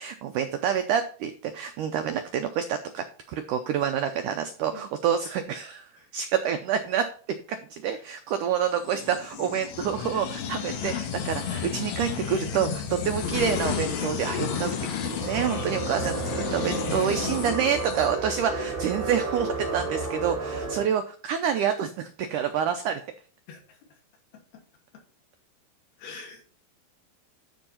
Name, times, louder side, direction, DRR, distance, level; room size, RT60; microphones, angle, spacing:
voice 1, 0.0-7.0 7.5-23.0, right 8 dB, 85° right, 8 dB, 1.8 m, -28 dB
sound 1, 8.8-18.5, left 7 dB, 90° left, 3.7 m, -32 dB
sound 2, 15.2-20.8, right 3 dB, 35° right, 0.8 m, -32 dB
voice 2, 17.0-17.3 18.5-18.8 23.5-23.8 24.5-24.6 26.0-26.4, left 4 dB, 70° left, 2 dB, 4.3 m, -44 dB
12.0 x 4.6 x 5.7 m, 0.41 s
omnidirectional pair, 4.6 m